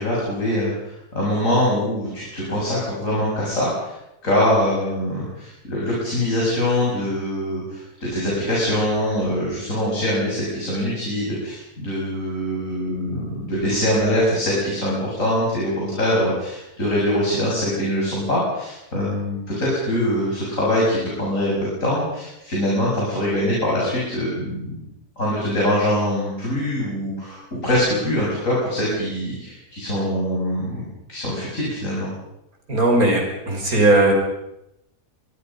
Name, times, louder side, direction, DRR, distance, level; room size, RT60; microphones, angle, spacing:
voice 1, 0.0-3.9 4.2-24.8 25.2-32.1, left 1 dB, 55° left, -5 dB, 7.3 m, -23 dB
voice 2, 32.7-34.1, right 2 dB, 70° right, 2 dB, 6.0 m, -17 dB
25.0 x 23.0 x 5.5 m, 0.86 s
omnidirectional pair, 1.6 m